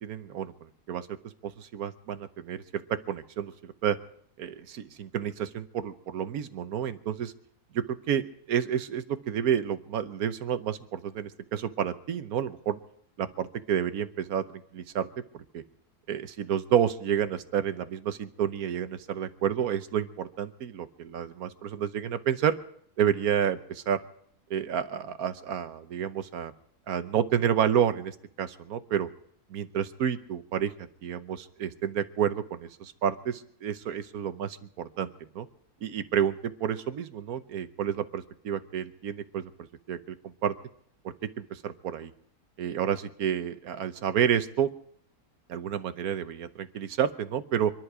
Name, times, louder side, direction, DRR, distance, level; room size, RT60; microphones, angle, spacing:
voice 1, 0.0-0.5 0.9-1.2 1.6-2.8 3.1-4.0 4.4-7.3 7.7-12.8 13.2-15.1 15.5-15.6 16.1-22.5 23.0-24.0 24.5-26.5 26.9-29.1 29.5-30.7 31.0-35.1 35.3-35.5 35.8-39.5 39.9-40.2 40.4-40.5 41.4-42.1 42.6-44.7 45.5-47.7, right 9 dB, 75° right, 11 dB, 1.3 m, -30 dB
25.5 x 11.0 x 4.9 m, 0.66 s
omnidirectional pair, 1.6 m